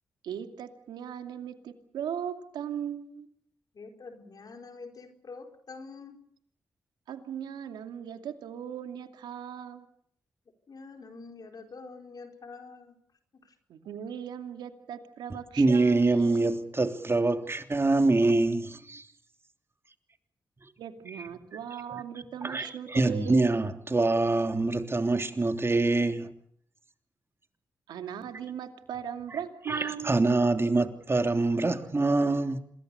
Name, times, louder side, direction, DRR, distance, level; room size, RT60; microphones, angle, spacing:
voice 1, 0.2-3.3 7.1-9.9 13.7-16.5 20.8-23.5 27.9-30.2, right 9 dB, 90° right, 2.5 m, -38 dB
voice 2, 3.7-6.2 10.7-12.9 13.4-13.5, left 4 dB, 60° left, 4.5 m, -46 dB
voice 3, 15.6-19.0 21.1-21.2 22.4-26.3 29.7-32.6, right 2 dB, 35° right, 3.3 m, -25 dB
27.0 x 21.0 x 6.9 m
supercardioid pair, 45°, 7 cm